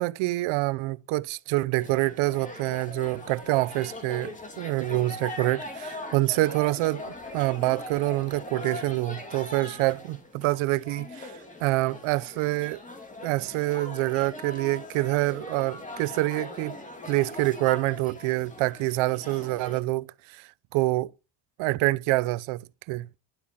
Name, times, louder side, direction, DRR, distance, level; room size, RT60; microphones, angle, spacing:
voice 1, 0.0-12.8 13.2-16.8 17.1-21.1 21.6-23.1, right 19 dB, 80° right, 0.9 m, -26 dB
sound 1, 1.8-19.8, left 2 dB, 15° left, 2.5 m, -41 dB
12.0 x 8.3 x 7.5 m
cardioid pair, 180°, 47 cm